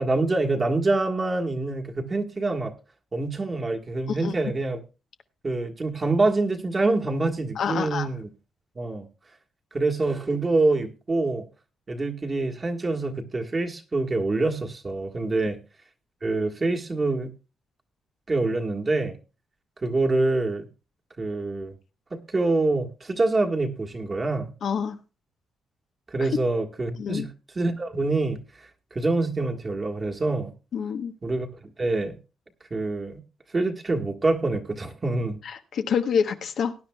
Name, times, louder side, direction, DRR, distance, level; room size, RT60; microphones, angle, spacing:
voice 1, 0.0-2.7 3.1-4.8 5.4-8.3 8.7-9.1 9.7-11.5 11.9-15.6 16.2-17.3 18.3-19.2 19.8-20.7 21.2-21.7 22.1-24.5 26.1-27.3 27.5-28.4 28.9-30.5 31.2-32.2 32.7-33.2 33.5-35.4, right 2 dB, 35° right, 2 dB, 1.6 m, -25 dB
voice 2, 7.6-8.1 24.6-25.0 26.2-26.3 27.0-27.3 30.7-31.1 35.4-36.7, left 7 dB, 70° left, 7 dB, 1.0 m, -27 dB
19.0 x 9.7 x 2.3 m, 0.31 s
cardioid pair, 75°, 0 cm